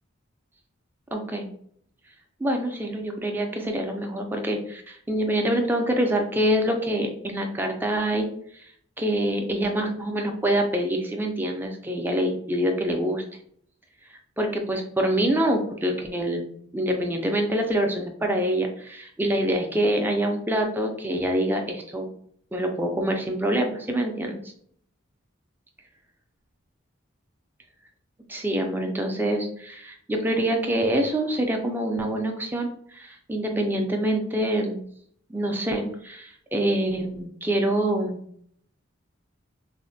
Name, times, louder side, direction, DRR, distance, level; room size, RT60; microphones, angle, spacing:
voice 1, 1.1-1.5 2.4-8.3 8.5-8.7 9.0-13.2 14.1-16.4 16.7-22.1 22.5-24.4 28.3-34.8 35.3-38.2, right 1 dB, 10° right, 3 dB, 0.4 m, -25 dB
4.0 x 2.1 x 2.6 m, 0.64 s
head